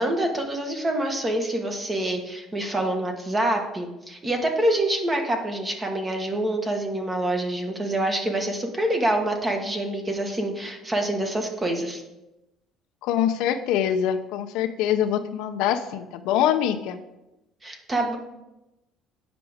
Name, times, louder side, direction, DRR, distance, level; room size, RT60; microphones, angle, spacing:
voice 1, 0.0-12.0 17.6-18.2, right 1 dB, 20° right, 3 dB, 1.4 m, -26 dB
voice 2, 13.0-17.0, left 10 dB, 80° left, 8 dB, 0.7 m, -24 dB
9.4 x 6.0 x 5.0 m, 0.95 s
cardioid pair, 140°, 0 cm